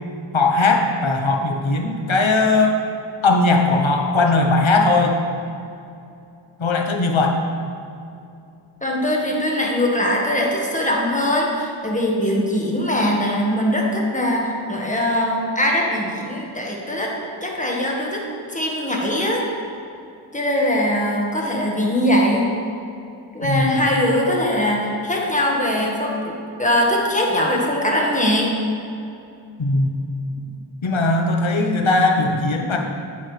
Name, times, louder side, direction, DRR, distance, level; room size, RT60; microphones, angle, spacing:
voice 1, 0.3-2.8 3.2-5.2 6.6-7.4 23.4-23.7 29.6-30.0 30.8-32.8, left 2 dB, 80° left, 2 dB, 1.0 m, -18 dB
voice 2, 8.8-17.1 17.4-18.2 18.5-19.4 20.3-22.5 23.3-28.5, left 1 dB, 15° left, -2 dB, 1.5 m, -21 dB
8.9 x 8.7 x 3.3 m, 2.6 s
wide cardioid pair, 50°, 47 cm